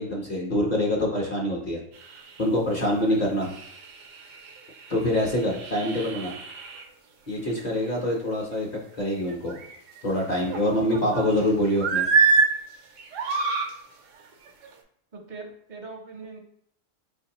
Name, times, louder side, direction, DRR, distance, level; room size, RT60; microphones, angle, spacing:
voice 1, 0.0-3.5 4.9-6.4 7.3-8.7 9.0-9.6 10.0-12.0, left 1 dB, 45° left, -2 dB, 0.6 m, -25 dB
sound 1, 2.0-2.5 3.0-3.1 3.4-6.8 9.3-10.0 10.5-11.4 11.8-12.5 13.0-13.7 14.5-14.7, right 4 dB, 75° right, 0.9 m, -26 dB
voice 2, 15.1-16.4, right 3 dB, 50° right, 2 dB, 0.6 m, -41 dB
4.4 x 2.5 x 2.8 m, 0.70 s
omnidirectional pair, 1.4 m